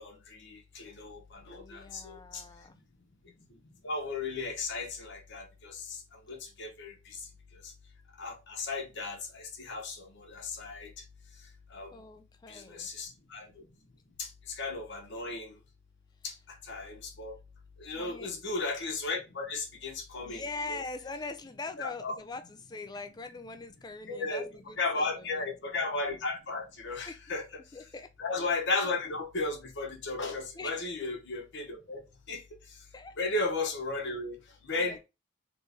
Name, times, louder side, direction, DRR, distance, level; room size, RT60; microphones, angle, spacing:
voice 1, 0.0-2.4 3.8-6.0 6.3-7.2 8.2-10.9 11.7-11.9 12.5-13.5 14.2-15.5 16.2-16.3 16.7-17.3 17.8-20.4 20.7-20.8 21.8-22.1 24.0-27.4 28.2-32.0 32.3-32.4 33.2-34.4 34.7-35.0, left 3 dB, 55° left, 1.0 m, -35 dB
voice 2, 1.5-2.8 11.9-12.9 17.9-18.3 20.2-25.4 27.1-27.2 27.7-28.1 30.6-31.0 32.9-33.2 34.7-35.0, left 3 dB, 20° left, 0.3 m, -42 dB
3.1 x 2.9 x 3.3 m
head